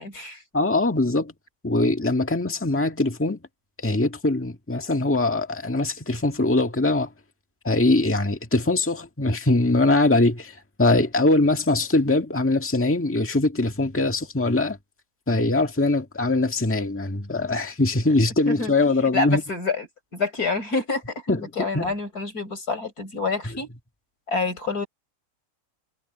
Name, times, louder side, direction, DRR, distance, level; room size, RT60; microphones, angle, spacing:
voice 1, 0.0-0.4 18.5-18.7 19.1-19.9 20.1-23.7 24.3-24.9, left 3 dB, 90° left, 5.7 m, -27 dB
voice 2, 0.5-1.3 1.6-3.4 3.8-7.1 7.6-14.8 15.3-19.4 21.3-21.9, left 2 dB, 10° left, 1.6 m, -22 dB
omnidirectional pair, 1.6 m